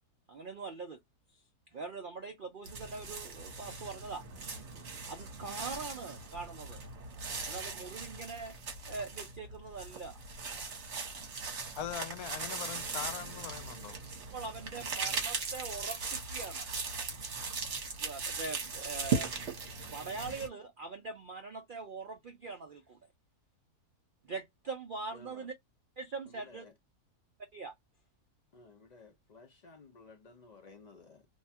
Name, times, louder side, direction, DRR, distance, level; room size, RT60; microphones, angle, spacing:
voice 1, 0.3-1.0 1.7-4.2 5.1-6.8 7.4-8.5 8.9-10.2 11.7-11.8 14.3-16.7 18.0-23.0 24.3-25.5 26.0-26.6 27.5-27.7, right 4 dB, 80° right, 0.4 m, -42 dB
sound 1, 2.6-20.5, right 4 dB, 50° right, 1.2 m, -39 dB
voice 2, 11.8-14.0, left 11 dB, 80° left, 1.1 m, -41 dB
voice 3, 25.1-25.5 26.3-26.7 28.5-31.3, left 3 dB, 65° left, 0.4 m, -56 dB
2.8 x 2.3 x 4.2 m
omnidirectional pair, 1.6 m